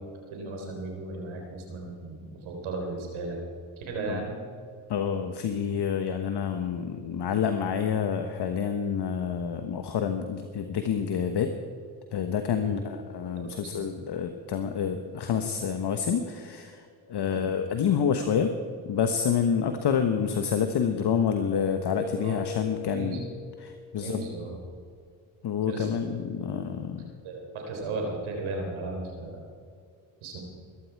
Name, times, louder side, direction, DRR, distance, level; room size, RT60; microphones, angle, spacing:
voice 1, 0.3-3.4 3.8-4.3 12.6-12.7 13.4-13.7 17.2-17.5 22.2-22.3 22.9-23.2 24.0-24.6 25.7-25.9 27.2-29.4 30.2-30.4, right 3 dB, 80° right, 1 dB, 3.9 m, -35 dB
voice 2, 4.9-11.5 12.1-18.5 18.8-23.2 23.6-24.3 25.4-27.1, left 7 dB, 55° left, 7 dB, 1.2 m, -28 dB
Keyboard (musical), 21.9-23.9, left 4 dB, 90° left, 2.4 m, -39 dB
20.5 x 13.0 x 4.7 m, 2.2 s
supercardioid pair, 60°, 47 cm